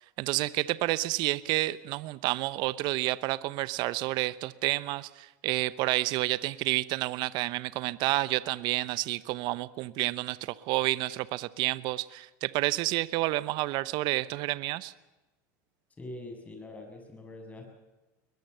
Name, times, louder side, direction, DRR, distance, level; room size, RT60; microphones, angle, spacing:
voice 1, 0.0-14.9, right 18 dB, 55° right, 17 dB, 0.9 m, -30 dB
voice 2, 16.0-17.7, left 2 dB, 15° left, 3 dB, 7.5 m, -43 dB
21.5 x 21.5 x 6.9 m, 1.1 s
supercardioid pair, 115°, 9 cm